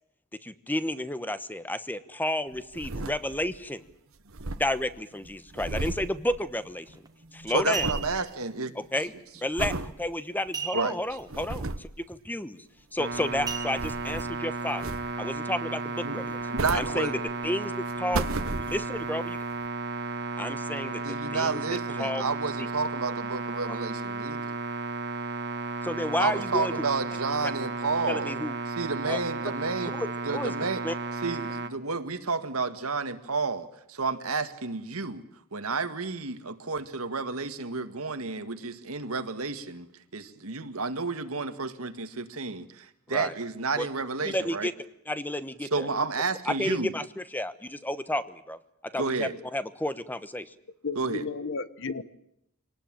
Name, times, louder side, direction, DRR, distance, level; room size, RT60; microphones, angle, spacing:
voice 1, 0.4-3.8 4.6-6.9 7.3-8.0 8.7-9.1 9.4-12.6 12.9-16.4 16.7-18.3 18.7-19.4 20.4-22.2 23.7-23.8 25.8-26.9 27.4-27.5 28.1-28.6 29.1-29.2 30.0-30.1 30.3-30.5 30.8-30.9 43.1-43.3 43.8-43.9 44.2-44.7 45.1-45.9 46.5-50.5, left 1 dB, 10° left, 13 dB, 1.1 m, -31 dB
sound 1, 2.5-3.7 3.9-7.0 7.2-8.2 8.7-9.0 9.6-9.9 10.5-10.6 11.1-12.0 13.0-14.4 14.8-15.4 16.2-17.5 17.9-19.1 19.6-19.7, right 2 dB, 70° right, 1.2 m, -35 dB
sound 2, 6.9-7.1 7.5-8.3 10.5-11.2 11.5-11.6 12.1-12.4 13.5-14.2 14.8-14.9, right 7 dB, 20° right, 1.5 m, -35 dB
voice 2, 7.5-8.7 10.7-11.0 16.0-17.1 21.0-24.6 26.2-28.3 28.8-30.0 30.3-30.8 31.2-35.2 35.5-39.9 40.1-44.7 45.7-46.9 48.9-49.4 51.0-51.2, right 4 dB, 90° right, 9 dB, 1.9 m, -31 dB
sound 3, 13.0-31.7, right 3 dB, 55° right, 1.4 m, -34 dB
voice 3, 50.8-52.0, left 4 dB, 60° left, 15 dB, 1.2 m, -33 dB
25.5 x 19.0 x 9.0 m, 0.77 s
head